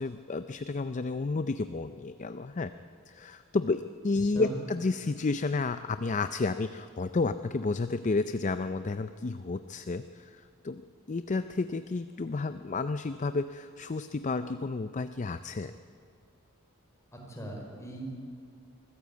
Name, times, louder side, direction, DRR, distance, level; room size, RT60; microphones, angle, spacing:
voice 1, 0.0-2.7 3.1-10.8 11.1-15.7, left 3 dB, 35° left, 11 dB, 0.4 m, -31 dB
voice 2, 17.1-18.2, right 2 dB, 15° left, -1 dB, 4.5 m, -40 dB
24.0 x 14.5 x 8.4 m, 2.4 s
head